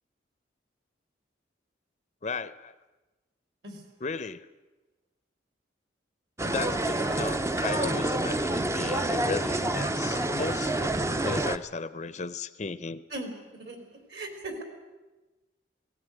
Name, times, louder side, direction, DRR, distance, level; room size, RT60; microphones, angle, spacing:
voice 1, 2.2-2.7 4.0-4.5 6.4-13.0, left 4 dB, 40° left, 14 dB, 0.6 m, -35 dB
sound 1, 6.4-11.6, right 1 dB, 15° right, 0.6 m, -28 dB
voice 2, 14.1-14.6, right 2 dB, 60° right, 6 dB, 3.9 m, -37 dB
18.0 x 18.0 x 9.1 m, 1.2 s
head